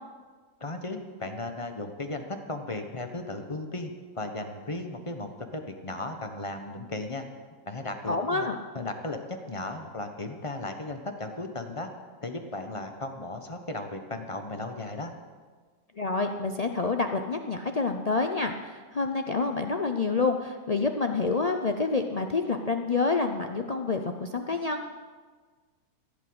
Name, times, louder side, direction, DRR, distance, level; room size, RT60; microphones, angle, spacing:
voice 1, 0.6-7.3 7.7-8.5 8.7-11.9 12.2-15.1, left 2 dB, 25° left, 6 dB, 1.0 m, -36 dB
voice 2, 8.1-8.6 16.0-24.9, left 3 dB, 75° left, 5 dB, 0.3 m, -28 dB
15.0 x 8.2 x 7.9 m, 1.5 s
omnidirectional pair, 1.7 m